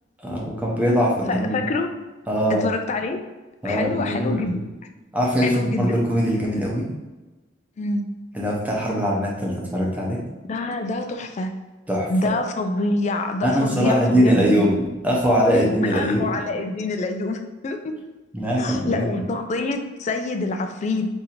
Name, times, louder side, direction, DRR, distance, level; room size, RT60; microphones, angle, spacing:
voice 1, 0.2-1.6 2.3-2.7 3.6-4.7 5.1-6.9 8.3-10.2 11.9-12.1 13.4-16.3 18.3-19.3, equal, 10° right, -3 dB, 0.7 m, -22 dB
voice 2, 1.3-1.9 2.5-3.2 3.6-4.6 5.4-5.9 7.8-8.0 10.5-11.5 12.1-14.7 15.5-15.6 15.9-17.9 18.6-21.1, left 2 dB, 40° left, 6 dB, 0.3 m, -26 dB
2.7 x 2.6 x 4.2 m, 1.1 s
head